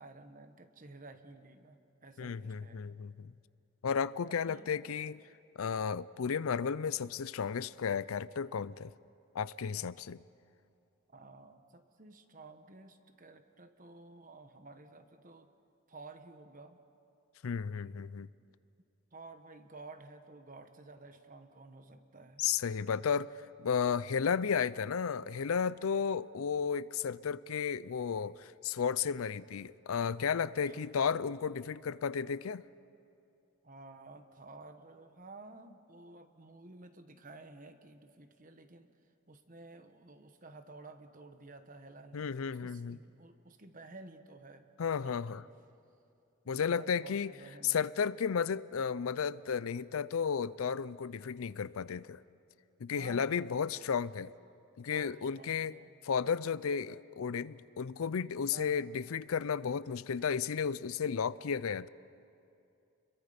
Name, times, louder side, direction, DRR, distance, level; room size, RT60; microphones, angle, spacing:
voice 1, 0.0-3.0 4.3-4.8 11.1-15.5 15.9-16.8 19.1-22.4 30.6-30.8 33.6-38.9 39.3-44.7 45.0-45.4 46.6-47.9 52.9-53.9 54.8-56.0 58.5-58.8, right 3 dB, 40° right, 8 dB, 1.2 m, -53 dB
voice 2, 2.2-3.3 3.8-5.2 5.6-8.9 9.3-10.2 17.4-18.3 22.4-32.6 42.1-43.0 44.8-45.4 46.5-47.3 47.6-52.2 52.8-54.3 54.8-55.8 56.0-61.9, left 6 dB, 75° left, 18 dB, 0.5 m, -33 dB
30.0 x 22.5 x 5.1 m, 2.6 s
head